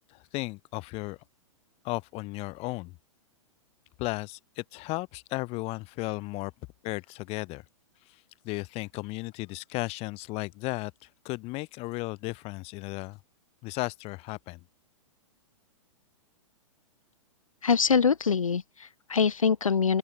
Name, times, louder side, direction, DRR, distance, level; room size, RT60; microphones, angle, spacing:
voice 1, 0.3-1.2 1.8-2.9 4.0-6.5 6.8-7.6 8.4-10.9 11.2-13.2 13.6-14.6, left 23 dB, 35° left, 3.4 m, -34 dB
voice 2, 17.6-20.0, left 6 dB, 90° left, 2.3 m, -24 dB
open air
hypercardioid pair, 120°, 17 cm